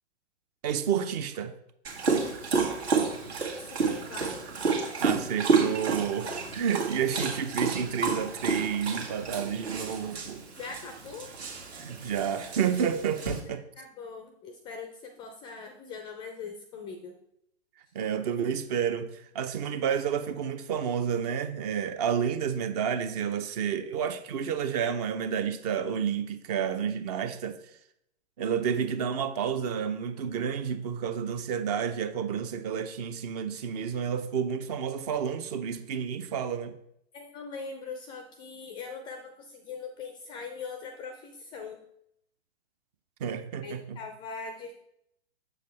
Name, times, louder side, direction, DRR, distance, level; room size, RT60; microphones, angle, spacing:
voice 1, 0.6-1.5 5.0-10.4 11.8-13.6 17.9-27.6 28.4-36.8 43.2-44.0, right 7 dB, 35° right, 0.6 m, -30 dB
Dog, 1.8-13.4, right 4 dB, 70° right, 1.8 m, -30 dB
voice 2, 3.7-4.8 10.5-11.4 13.8-17.2 37.1-41.8 43.6-44.7, left 5 dB, 15° left, 0.4 m, -42 dB
7.6 x 6.6 x 3.2 m
figure-of-eight pair, 115°, 34 cm